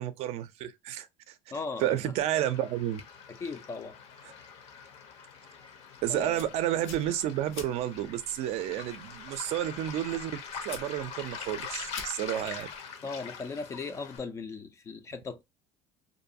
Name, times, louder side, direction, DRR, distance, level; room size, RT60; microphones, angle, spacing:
voice 1, 0.0-1.3 1.8-3.0 6.0-12.7, right 12 dB, 55° right, 0.4 m, -31 dB
voice 2, 1.5-2.2 3.3-4.0 6.1-6.5 13.0-15.4, left 4 dB, 25° left, 0.4 m, -38 dB
Waves surf, 2.2-14.2, left 6 dB, 50° left, 0.7 m, -44 dB
sound 1, 6.0-12.8, left 5 dB, 90° left, 0.7 m, -50 dB
2.6 x 2.2 x 2.6 m
cardioid pair, 135°, 13 cm